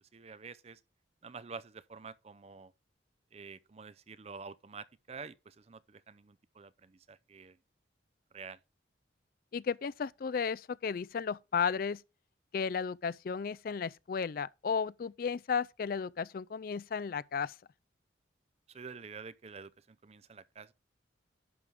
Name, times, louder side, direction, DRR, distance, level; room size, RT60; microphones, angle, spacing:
voice 1, 0.1-0.8 1.2-2.7 3.3-7.6 8.3-8.6 18.7-20.7, right 5 dB, 35° right, 0.5 m, -48 dB
voice 2, 9.5-12.0 12.5-17.6, left 6 dB, 50° left, 0.4 m, -34 dB
11.0 x 6.1 x 3.6 m
head